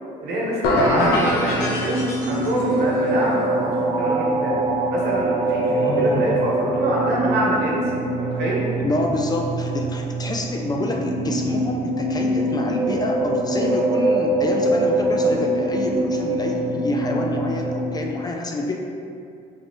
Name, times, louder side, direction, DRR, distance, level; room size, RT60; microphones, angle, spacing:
voice 1, 0.2-2.0 2.3-4.6 4.9-7.8 8.2-8.6, right 1 dB, 75° right, -4 dB, 1.0 m, -26 dB
sound 1, 0.6-2.7, left 1 dB, 80° left, 0.7 m, -22 dB
voice 2, 0.7-1.1 5.7-6.4 8.8-18.7, left 2 dB, 25° left, 1 dB, 0.4 m, -27 dB
sound 2, 0.8-18.1, right 1 dB, 40° right, 0.5 m, -24 dB
4.0 x 3.2 x 2.9 m, 2.4 s
cardioid pair, 110°, 17 cm